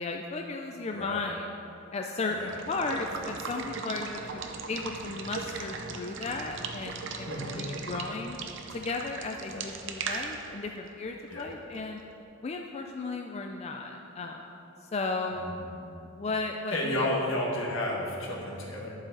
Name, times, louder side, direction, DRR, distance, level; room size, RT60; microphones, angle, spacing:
voice 1, 0.0-1.5 1.9-8.4 8.7-12.0 12.4-14.4 14.8-15.4 16.2-17.1, left 3 dB, 30° left, 3 dB, 0.4 m, -35 dB
voice 2, 0.9-1.2 2.3-2.5 7.2-7.6 9.5-9.6 11.3-11.5 15.3-15.9 16.7-18.9, left 1 dB, 70° left, -3 dB, 1.7 m, -32 dB
Water / Water tap faucet / Liquid, 2.4-12.0, right 4 dB, 65° right, 0.7 m, -39 dB
10.5 x 7.3 x 3.9 m, 2.9 s
head